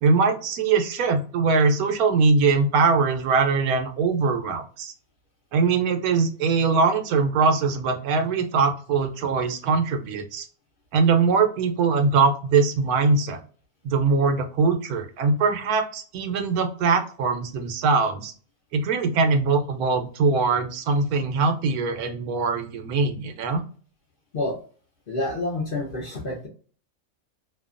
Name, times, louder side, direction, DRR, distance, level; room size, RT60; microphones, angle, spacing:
voice 1, 0.0-4.9 5.5-10.4 10.9-13.4 13.8-18.3 18.7-23.6, right 4 dB, 85° right, 6 dB, 1.1 m, -22 dB
voice 2, 25.1-26.5, left 2 dB, 55° left, -2 dB, 0.6 m, -28 dB
2.7 x 2.2 x 2.4 m, 0.40 s
omnidirectional pair, 1.5 m